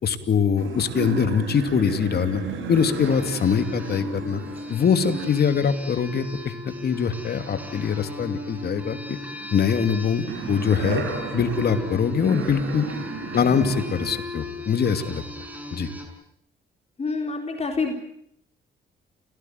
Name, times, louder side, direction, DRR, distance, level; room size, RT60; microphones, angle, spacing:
voice 1, 0.0-2.4 2.7-4.4 4.7-9.2 9.5-11.0 11.3-12.9 13.3-15.2 15.7-15.9, left 6 dB, 55° left, 9 dB, 2.8 m, -23 dB
sound 1, 0.6-8.3 8.6-14.1 14.6-14.8, right 4 dB, 80° right, 6.2 m, -35 dB
sound 2, 2.7-16.1, left 2 dB, 10° right, 6.4 m, -38 dB
voice 2, 17.0-17.9, left 4 dB, 30° left, 3 dB, 4.2 m, -27 dB
29.5 x 17.5 x 9.5 m, 0.71 s
cardioid pair, 90°, 20 cm